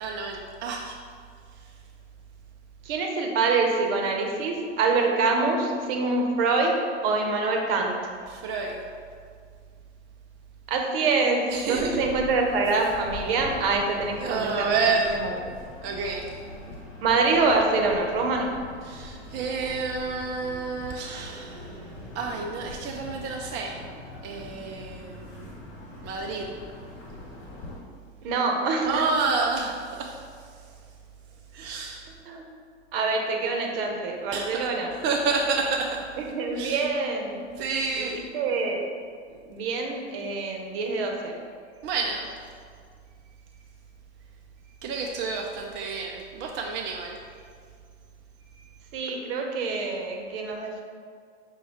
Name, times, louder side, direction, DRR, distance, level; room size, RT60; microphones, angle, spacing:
voice 1, 0.0-1.0 8.3-8.8 11.5-12.0 14.2-15.2 15.8-16.2 18.8-21.7 22.2-23.8 24.2-25.5 26.0-26.5 28.8-30.2 31.5-32.1 34.3-34.7 35.0-36.0 36.6-36.8 37.6-38.2 41.8-42.3 44.8-47.2, right 4 dB, 35° right, 0 dB, 0.4 m, -29 dB
voice 2, 2.8-6.7 7.0-7.9 10.7-14.7 15.1-15.4 17.0-18.5 28.2-29.0 32.3-32.4 32.9-34.9 36.2-37.4 38.0-38.8 39.3-41.3 48.9-50.8, right 3 dB, 60° right, 2 dB, 0.8 m, -25 dB
sound 1, 11.7-27.8, left 2 dB, 45° left, 1.4 m, -43 dB
6.1 x 2.3 x 3.5 m, 2.1 s
hypercardioid pair, 95°, 33 cm